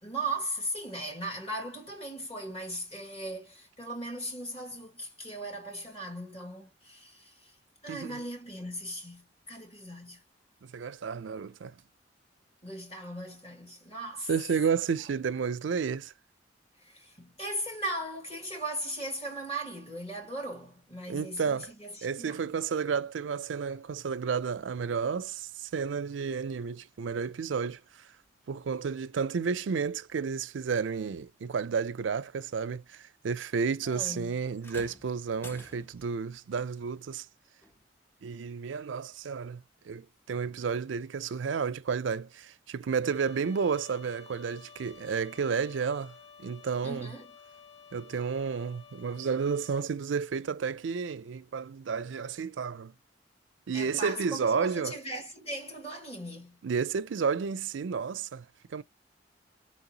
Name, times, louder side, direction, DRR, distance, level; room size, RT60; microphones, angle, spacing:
voice 1, 0.0-7.6 7.8-10.2 12.6-14.3 16.8-22.5 33.8-34.4 46.8-47.3 53.7-56.6, right 1 dB, 35° left, 1.6 m, -38 dB
voice 2, 7.9-8.2 10.6-11.7 14.3-16.1 21.1-21.7 22.0-27.8 28.5-37.3 38.2-47.1 47.9-52.9 53.7-55.0 56.6-58.4 58.7-58.8, right 6 dB, 80° right, 0.4 m, -31 dB
sound 1, 34.6-36.2 37.6-37.8 38.6-38.7, left 1 dB, 10° left, 0.4 m, -49 dB
Trumpet, 43.0-49.9, left 6 dB, 70° left, 1.0 m, -53 dB
4.3 x 3.9 x 2.8 m
head